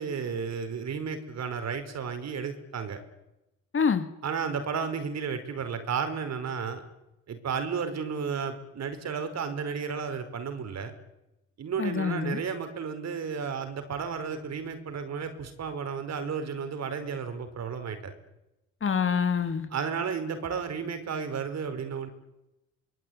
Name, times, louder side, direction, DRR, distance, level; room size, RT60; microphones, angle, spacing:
voice 1, 0.0-3.0 4.2-6.8 7.3-10.9 11.6-18.1 19.7-22.1, right 6 dB, 60° right, 9 dB, 5.0 m, -33 dB
voice 2, 3.7-4.0 11.8-12.4 18.8-19.7, left 6 dB, 45° left, 9 dB, 3.1 m, -26 dB
25.0 x 20.5 x 9.6 m, 0.92 s
cardioid pair, 90°, 30 cm